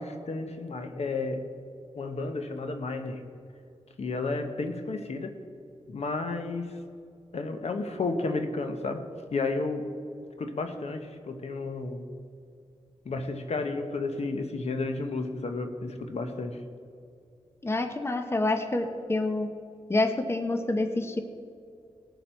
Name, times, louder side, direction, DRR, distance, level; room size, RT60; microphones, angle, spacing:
voice 1, 0.0-1.5 2.0-3.3 4.0-5.4 5.9-6.8 7.3-9.9 10.4-12.1 13.0-16.6, left 3 dB, 70° left, 6 dB, 1.0 m, -32 dB
voice 2, 17.6-19.5 19.9-21.2, left 2 dB, 20° left, 6 dB, 0.9 m, -27 dB
19.0 x 7.0 x 4.4 m, 2.5 s
wide cardioid pair, 110°, 11 cm